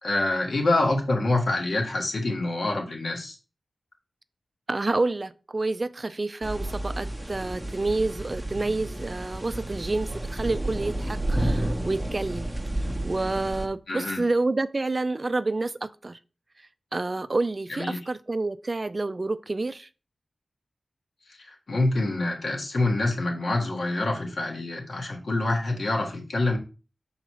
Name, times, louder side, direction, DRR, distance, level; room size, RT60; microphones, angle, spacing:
voice 1, 0.0-3.4 13.9-14.2 17.7-18.0 21.4-26.6, left 2 dB, 70° left, 1.7 m, -26 dB
voice 2, 4.7-12.5 12.8-16.2 16.9-19.9, right 2 dB, 35° right, 0.3 m, -28 dB
sound 1, 6.4-13.7, right 1 dB, 10° right, 0.8 m, -31 dB
5.8 x 3.9 x 4.7 m
wide cardioid pair, 80°, 0 cm